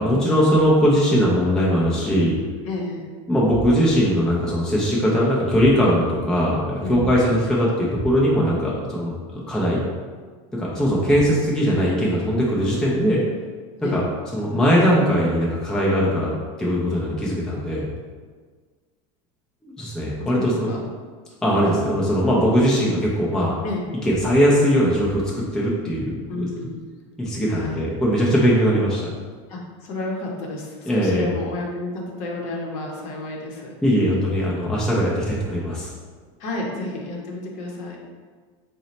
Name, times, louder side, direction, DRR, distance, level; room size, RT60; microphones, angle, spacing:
voice 1, 0.0-2.3 3.3-9.8 10.5-13.2 13.8-14.0 14.3-16.3 16.6-17.9 19.6-20.7 21.4-23.5 24.0-26.5 27.2-29.1 30.9-31.3 33.8-35.9, equal, 5° left, -5 dB, 0.4 m, -20 dB
voice 2, 2.6-3.0 6.8-7.2 13.8-14.0 20.1-20.8 23.6-23.8 26.3-26.8 27.5-27.8 29.5-33.9 36.4-38.0, left 2 dB, 45° left, -1 dB, 0.7 m, -31 dB
4.0 x 2.1 x 3.9 m, 1.5 s
supercardioid pair, 155°, 16 cm